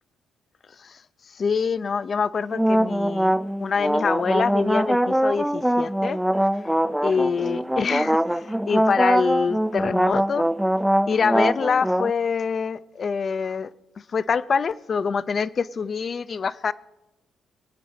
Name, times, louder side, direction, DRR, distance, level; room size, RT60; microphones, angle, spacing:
voice 1, 1.3-6.2 7.0-10.5 11.1-13.7 14.1-16.7, left 5 dB, 45° left, 15 dB, 0.5 m, -25 dB
sound 1, 2.5-12.1, equal, 5° right, 0.4 m, -23 dB
24.0 x 8.6 x 5.1 m, 0.95 s
cardioid pair, 90°, 0 cm